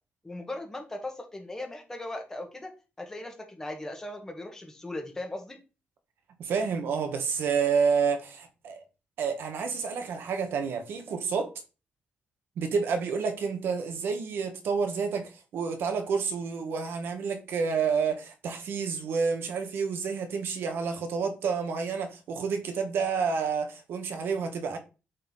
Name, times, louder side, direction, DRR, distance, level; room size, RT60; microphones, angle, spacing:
voice 1, 0.2-2.7 3.0-5.6, left 1 dB, 15° left, 1.7 m, -38 dB
voice 2, 6.4-8.8 9.2-11.5 12.6-24.8, right 5 dB, 80° right, 1.4 m, -29 dB
7.8 x 4.2 x 4.1 m
wide cardioid pair, 145°, 4 cm